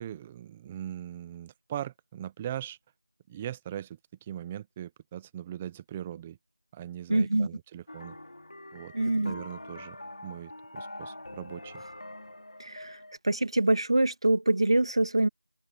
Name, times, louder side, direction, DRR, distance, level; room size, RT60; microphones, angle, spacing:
voice 1, 0.0-2.8 3.3-6.4 6.7-8.2 8.7-8.9 9.2-10.0 10.2-11.8, right 11 dB, 5° right, 0.6 m, -40 dB
voice 2, 7.1-7.5 8.9-9.3 12.6-13.0 13.2-15.3, right 2 dB, 40° right, 1.7 m, -25 dB
sound 1, 7.9-13.2, left 1 dB, 55° left, 5.0 m, -44 dB
figure-of-eight pair, 175°, 4 cm